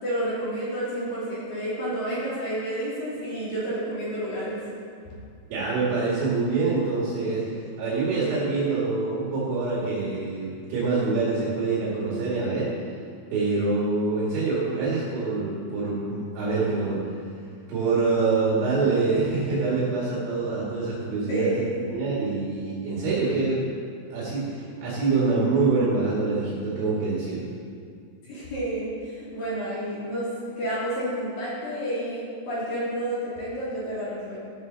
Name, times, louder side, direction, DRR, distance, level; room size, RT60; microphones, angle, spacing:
voice 1, 0.0-4.6 21.3-21.9 28.2-30.3 30.6-34.4, right 1 dB, 50° left, -8 dB, 4.2 m, -30 dB
voice 2, 5.5-7.4 7.8-12.7 13.3-17.0 17.7-21.5 21.9-23.7 24.1-27.5, right 3 dB, 70° right, -7 dB, 4.5 m, -25 dB
14.5 x 12.5 x 4.1 m, 2.3 s
omnidirectional pair, 5.8 m